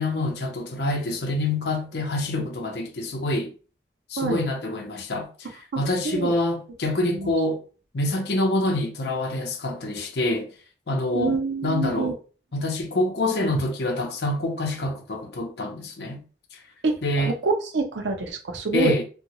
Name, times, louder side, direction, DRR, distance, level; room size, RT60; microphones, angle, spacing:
voice 1, 0.0-3.5 4.1-5.5 5.8-7.6 7.9-10.5 10.9-12.1 12.5-16.2 17.0-17.3 18.7-19.0, left 2 dB, 65° left, 0.6 m, -26 dB
voice 2, 5.7-6.4 7.1-7.3 11.1-12.1 16.8-18.9, right 4 dB, 90° right, 0.6 m, -27 dB
2.7 x 2.2 x 2.9 m
head